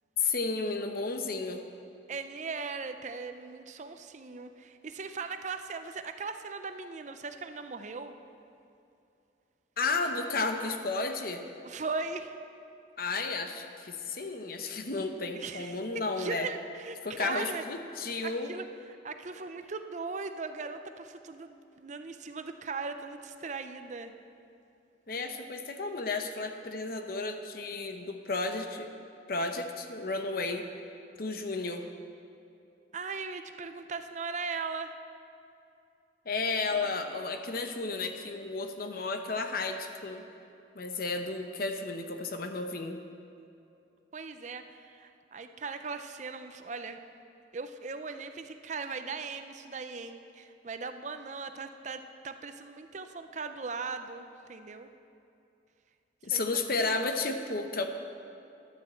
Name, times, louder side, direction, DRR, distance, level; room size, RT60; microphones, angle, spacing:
voice 1, 0.2-1.6 9.8-11.4 13.0-16.5 17.0-18.5 25.1-28.9 29.3-30.7 31.2-31.9 36.3-40.2 40.7-43.0 56.2-57.9, left 3 dB, 55° left, 6 dB, 0.8 m, -33 dB
voice 2, 2.1-8.1 11.6-12.4 15.3-17.6 18.2-18.6 19.0-24.1 32.9-34.9 36.8-37.2 44.1-47.0 47.5-54.9 56.3-56.4, right 4 dB, 40° right, 8 dB, 0.5 m, -39 dB
11.5 x 7.4 x 7.7 m, 2.7 s
head